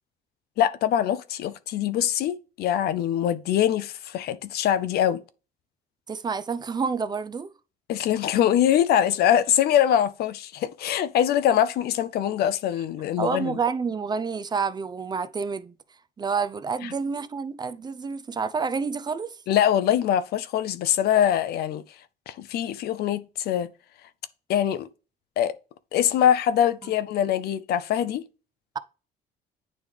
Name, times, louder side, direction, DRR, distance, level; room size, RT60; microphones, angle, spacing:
voice 1, 0.6-5.2 7.9-13.6 16.8-16.9 19.5-21.8 22.3-23.7 24.5-24.9 25.4-25.5 25.9-28.3, left 10 dB, 70° left, 0.6 m, -23 dB
voice 2, 6.1-7.5 13.2-15.7 16.2-19.4 26.8-26.9, right 5 dB, 25° right, 0.4 m, -29 dB
9.2 x 3.2 x 3.4 m
cardioid pair, 110°, 17 cm